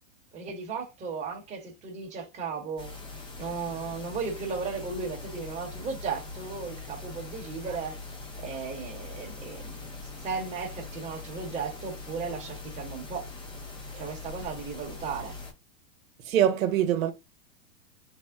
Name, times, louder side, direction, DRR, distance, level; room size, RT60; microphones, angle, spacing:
voice 1, 0.3-3.0 3.4-8.0 8.4-9.9 10.2-13.3 14.0-15.4, right 5 dB, 15° right, 1.0 m, -35 dB
sound 1, 2.8-15.5, left 3 dB, 10° left, 0.7 m, -42 dB
voice 2, 16.3-17.1, right 10 dB, 80° right, 0.9 m, -24 dB
3.5 x 2.0 x 3.6 m
supercardioid pair, 140°, 40 cm